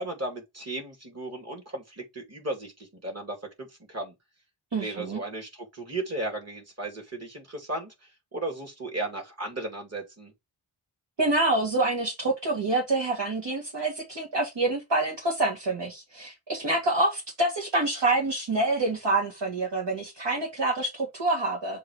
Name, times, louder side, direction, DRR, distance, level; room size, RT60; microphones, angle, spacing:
voice 1, 0.0-4.1 4.8-7.9 8.3-10.3, right 2 dB, 30° right, 2.5 m, -35 dB
voice 2, 4.7-5.2 11.2-21.8, right 2 dB, 60° right, 1.9 m, -27 dB
7.0 x 2.9 x 4.7 m
wide cardioid pair, 95°, 49 cm